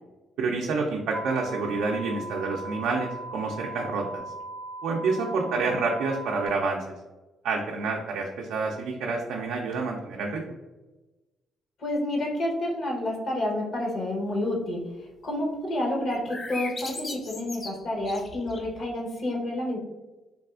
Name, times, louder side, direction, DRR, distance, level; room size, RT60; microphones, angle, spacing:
voice 1, 0.4-4.2 4.8-6.8 7.4-10.5, right 4 dB, 85° right, -1 dB, 0.4 m, -28 dB
sound 1, 1.1-6.5, right 2 dB, 50° right, 0.6 m, -38 dB
voice 2, 5.4-5.8 11.8-19.8, left 1 dB, 60° left, -1 dB, 0.9 m, -29 dB
sound 2, 16.1-18.8, left 3 dB, 40° left, 0.5 m, -38 dB
3.4 x 2.4 x 2.4 m, 1.1 s
cardioid pair, 90°, 0 cm